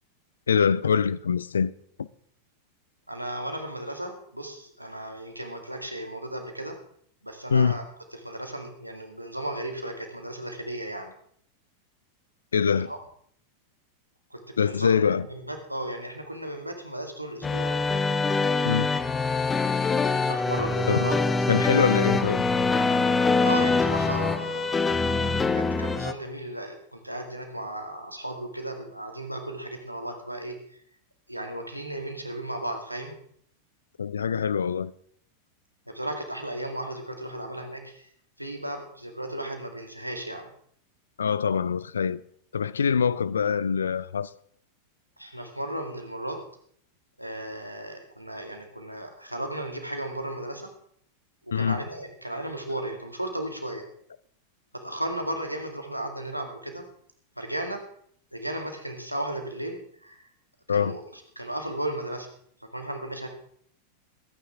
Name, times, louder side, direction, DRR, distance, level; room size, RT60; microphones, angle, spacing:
voice 1, 0.5-1.7 2.0-2.1 7.5-7.8 12.5-12.9 14.6-15.3 18.6-18.9 20.9-21.1 21.5-22.4 34.0-34.9 41.2-42.2 42.5-44.3 51.5-51.8 60.7-61.0, left 6 dB, 70° left, 0.4 m, -24 dB
voice 2, 3.1-6.8 7.2-7.8 8.1-11.2 12.7-13.0 14.3-14.9 15.3-17.8 20.2-21.2 23.4-24.8 25.6-30.8 31.3-33.2 35.9-38.1 38.4-40.5 45.2-46.4 47.2-50.7 51.5-53.9 54.7-56.9 57.4-57.8 58.3-60.2 60.7-62.3 62.7-63.3, right 1 dB, 90° right, 2.1 m, -35 dB
sound 1, 17.4-26.1, left 3 dB, 15° left, 0.9 m, -24 dB
22.0 x 9.6 x 3.6 m
figure-of-eight pair, 90°, 0 cm